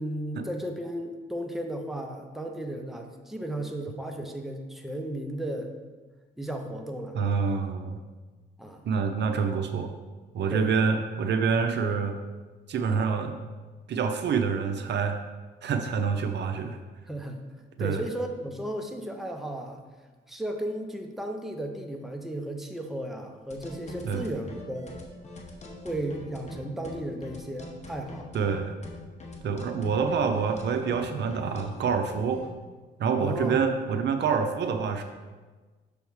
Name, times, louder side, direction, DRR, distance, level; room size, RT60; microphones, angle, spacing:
voice 1, 0.0-5.7 6.4-7.1 8.6-8.8 10.5-10.7 17.1-17.4 17.8-19.8 20.3-25.0 25.8-28.3 33.2-33.7, right 1 dB, ahead, 3 dB, 0.7 m, -34 dB
voice 2, 7.1-8.0 8.8-9.9 10.3-12.1 12.7-13.3 13.9-15.2 15.6-16.8 17.8-18.0 24.0-24.2 28.3-28.7 29.4-32.5 33.0-35.0, right 5 dB, 60° right, 7 dB, 0.6 m, -27 dB
sound 1, 23.5-32.5, left 1 dB, 35° left, 1.1 m, -43 dB
6.3 x 3.5 x 4.7 m, 1.3 s
cardioid pair, 90°, 20 cm